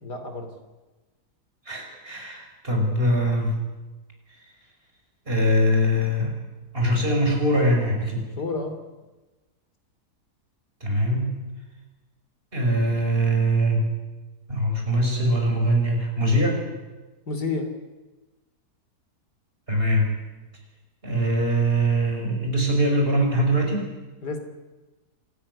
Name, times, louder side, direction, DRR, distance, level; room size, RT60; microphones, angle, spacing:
voice 1, 0.0-0.5 8.2-8.8 17.3-17.7 24.2-24.4, left 3 dB, 75° left, 7 dB, 3.6 m, -30 dB
voice 2, 1.7-3.6 5.3-6.3 6.7-8.2 10.8-11.4 12.5-13.9 14.5-16.6 19.7-20.1 21.0-23.9, equal, 35° right, 1 dB, 6.0 m, -22 dB
26.5 x 14.0 x 9.8 m, 1.2 s
omnidirectional pair, 1.8 m